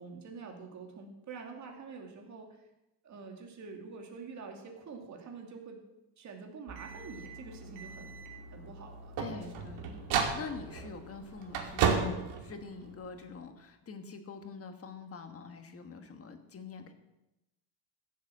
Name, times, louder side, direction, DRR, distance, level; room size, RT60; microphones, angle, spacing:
voice 1, 0.0-2.7 3.0-5.8 6.2-8.1 8.5-9.1, right 4 dB, 35° right, 2 dB, 2.6 m, -46 dB
sound 1, 6.7-13.2, right 6 dB, 70° right, 2.5 m, -35 dB
voice 2, 9.2-16.9, left 4 dB, 30° left, 7 dB, 1.4 m, -45 dB
15.5 x 7.3 x 7.6 m, 0.94 s
cardioid pair, 170°, 46 cm